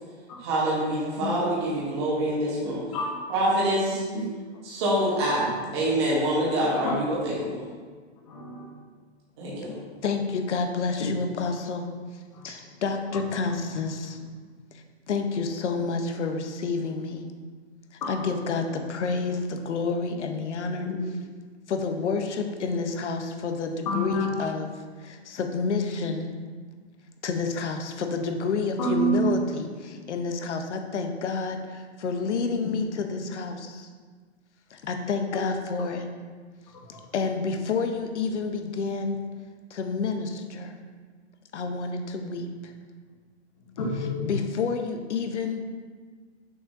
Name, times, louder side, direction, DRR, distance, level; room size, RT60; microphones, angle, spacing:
voice 1, 0.4-2.8 3.3-4.0 4.6-5.4 5.7-7.6 9.4-9.8, right 1 dB, 25° right, -6 dB, 1.1 m, -25 dB
voice 2, 8.2-8.7 12.3-12.5 18.0-18.1 20.8-20.9 23.9-24.3 28.8-29.4 43.8-44.3, right 1 dB, 30° left, -4 dB, 1.2 m, -28 dB
voice 3, 10.0-11.9 12.5-14.2 15.1-17.3 18.1-20.9 21.7-24.7 25.0-26.3 27.2-33.9 34.7-36.1 37.1-39.2 39.7-40.8 41.5-42.7 44.2-45.6, left 4 dB, 85° left, 5 dB, 0.9 m, -29 dB
6.4 x 5.7 x 2.7 m, 1.5 s
hypercardioid pair, 175°, 34 cm